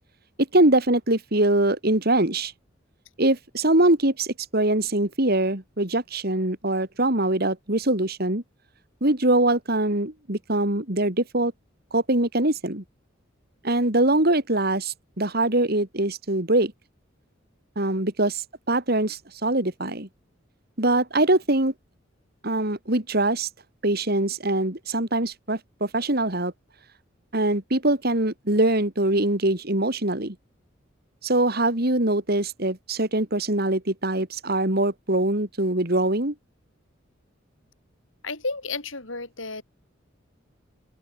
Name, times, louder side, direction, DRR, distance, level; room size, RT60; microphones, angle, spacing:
voice 1, 0.4-2.5 3.2-8.4 9.0-11.5 11.9-12.8 13.6-16.7 17.8-20.1 20.8-21.7 22.4-23.5 23.8-26.5 27.3-30.3 31.2-36.3, right 1 dB, 50° right, 3.1 m, -23 dB
voice 2, 38.2-39.6, left 3 dB, 80° left, 7.7 m, -32 dB
open air
head